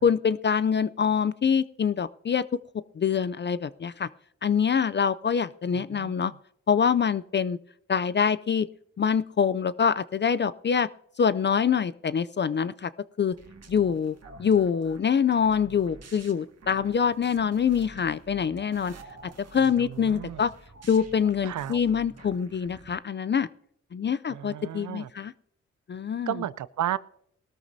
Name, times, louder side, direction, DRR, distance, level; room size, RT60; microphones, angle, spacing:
voice 1, 0.0-2.4 3.0-4.1 4.4-6.3 6.7-7.6 7.9-8.7 9.0-10.9 11.2-12.9 13.2-13.4 13.7-18.9 19.5-20.5 20.9-23.5 23.9-25.3 25.9-26.4, left 7 dB, 40° left, 16 dB, 0.4 m, -25 dB
sound 1, 13.3-22.9, right 3 dB, 55° right, 1.9 m, -49 dB
voice 2, 20.0-20.4 21.5-21.8 24.3-25.1 26.3-27.0, right 11 dB, 75° right, 18 dB, 0.5 m, -32 dB
19.5 x 13.0 x 2.7 m, 0.71 s
cardioid pair, 65°, 30 cm